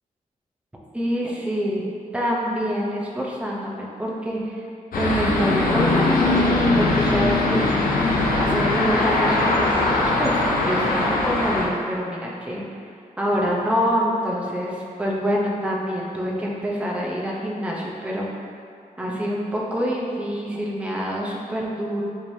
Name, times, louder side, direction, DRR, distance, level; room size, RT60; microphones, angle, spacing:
voice 1, 0.9-1.8 2.1-4.6 5.0-7.7 8.3-12.6 13.2-18.3 19.0-22.0, equal, 10° right, -4 dB, 0.7 m, -26 dB
sound 1, 4.9-11.7, left 2 dB, 85° left, 0.6 m, -21 dB
4.9 x 2.9 x 2.7 m, 2.4 s
cardioid pair, 85°, 15 cm